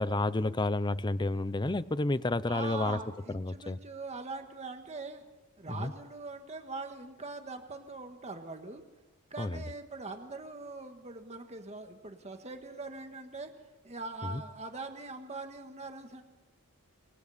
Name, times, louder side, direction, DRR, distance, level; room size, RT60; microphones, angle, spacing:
voice 1, 0.0-3.0 3.3-3.8 5.7-5.9 9.4-9.6 14.2-14.4, left 2 dB, 20° left, 16 dB, 0.6 m, -30 dB
voice 2, 2.5-5.2 5.6-8.8 9.3-13.5 13.8-16.2, right 3 dB, 30° right, 5 dB, 1.7 m, -42 dB
28.0 x 24.5 x 4.3 m, 1.1 s
head